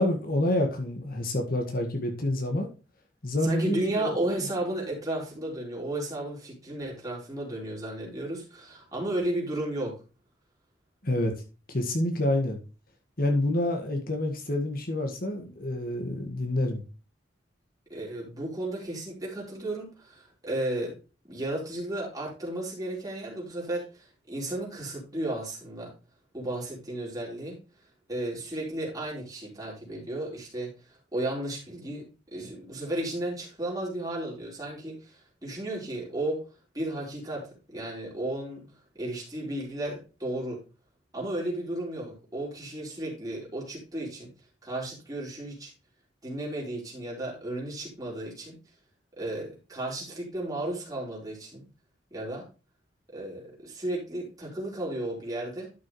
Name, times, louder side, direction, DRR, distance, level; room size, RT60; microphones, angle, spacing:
voice 1, 0.0-2.7 3.2-4.2 11.0-11.3 11.7-12.6 13.2-16.8, left 1 dB, 50° left, 4 dB, 1.7 m, -28 dB
voice 2, 3.4-9.9 17.9-20.9 21.3-25.9 26.3-27.6 28.1-30.7 31.1-36.4 36.7-38.6 39.0-40.6 41.1-44.3 44.6-45.7 46.2-48.6 49.2-51.6 52.1-52.5 53.1-55.7, right 1 dB, 20° right, -4 dB, 4.0 m, -34 dB
11.5 x 6.2 x 3.1 m, 0.31 s
head